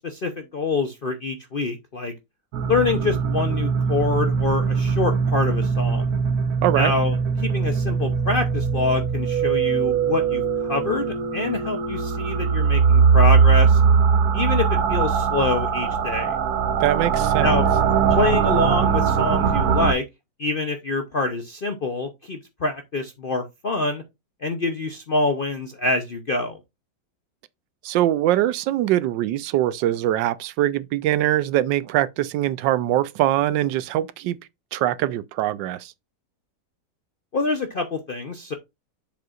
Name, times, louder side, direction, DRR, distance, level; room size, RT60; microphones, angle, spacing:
voice 1, 0.0-2.1 2.7-6.1 6.7-13.8 14.3-16.4 17.4-17.7 18.1-20.0 20.4-24.0 24.4-26.6 37.3-38.5, left 3 dB, 55° left, 0.6 m, -26 dB
sound 1, 2.5-19.9, right 6 dB, 65° right, 1.2 m, -21 dB
voice 2, 6.6-6.9 16.8-17.6 27.8-34.4 34.7-35.9, right 13 dB, 85° right, 1.2 m, -22 dB
7.7 x 6.8 x 2.4 m
omnidirectional pair, 1.9 m